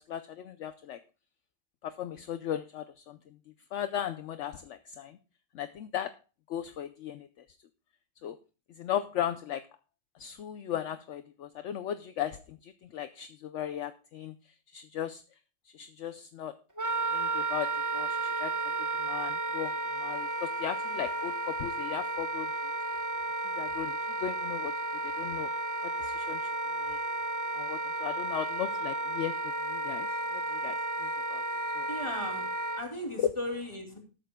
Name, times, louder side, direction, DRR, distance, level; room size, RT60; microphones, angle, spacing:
voice 1, 0.1-1.0 1.8-3.2 3.7-5.2 5.5-6.1 6.5-7.3 8.2-8.4 8.8-9.6 10.2-14.3 14.7-15.2 15.7-16.5 17.1-18.5 18.8-19.7 20.0-22.5 23.6-24.7 25.0-25.5 26.0-26.5 26.8-27.0 27.5-31.4 31.7-31.9 33.2-33.3, left 10 dB, 60° left, 11 dB, 0.8 m, -36 dB
Wind instrument woodwind instrument, 16.8-32.8, right 2 dB, 20° right, 0.5 m, -33 dB
voice 2, 31.9-32.5 32.8-34.0, left 1 dB, 15° left, 2 dB, 2.8 m, -36 dB
18.5 x 9.2 x 2.2 m, 0.33 s
omnidirectional pair, 1.7 m